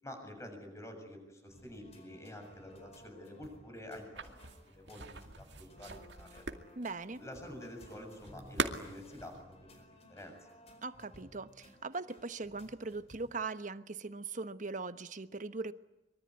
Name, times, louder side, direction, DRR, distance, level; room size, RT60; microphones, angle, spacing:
voice 1, 0.0-4.3 4.7-6.4 7.2-10.6, left 1 dB, 15° left, 7.1 m, -48 dB
sound 1, 1.5-13.4, left 1 dB, 35° left, 4.7 m, -58 dB
sound 2, 4.1-9.4, right 3 dB, 70° right, 2.3 m, -41 dB
voice 2, 6.7-7.2 10.8-15.7, right 3 dB, 45° right, 1.1 m, -40 dB
24.5 x 23.5 x 9.7 m
head